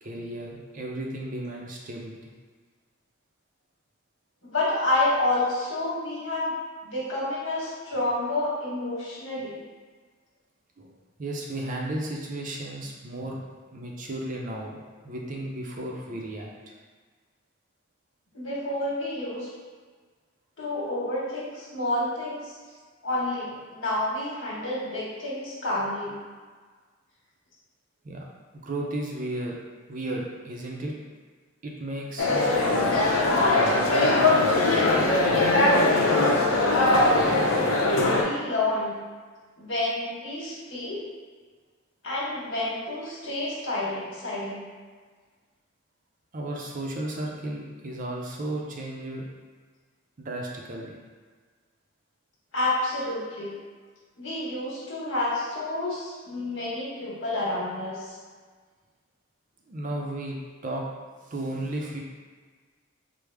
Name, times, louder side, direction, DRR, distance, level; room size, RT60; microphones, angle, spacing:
voice 1, 0.0-2.3 10.8-10.9 11.2-13.4 13.7-16.7 28.0-28.2 28.5-29.5 29.9-30.9 31.6-33.0 33.6-34.6 46.3-49.3 50.2-51.0 59.7-60.4 60.6-60.8 61.3-62.0, right 1 dB, 40° right, -1 dB, 0.5 m, -34 dB
voice 2, 4.4-6.5 6.8-9.6 18.3-19.5 20.6-22.5 23.0-26.2 37.1-37.6 38.1-38.9 39.6-41.0 42.0-44.6 52.5-53.6 54.2-58.2, left 2 dB, 70° left, -6 dB, 1.2 m, -29 dB
sound 1, 32.2-38.2, left 2 dB, 85° left, 0.6 m, -21 dB
4.7 x 2.0 x 3.4 m, 1.5 s
head